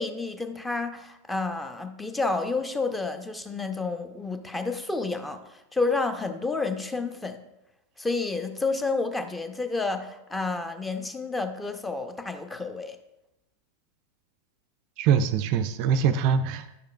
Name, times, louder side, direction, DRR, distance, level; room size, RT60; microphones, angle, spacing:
voice 1, 0.0-7.4 8.0-13.0, left 3 dB, 10° left, 9 dB, 0.6 m, -30 dB
voice 2, 15.0-16.8, right 7 dB, 45° right, 11 dB, 0.3 m, -23 dB
9.8 x 6.6 x 2.3 m, 0.89 s
figure-of-eight pair, 90°, 0 cm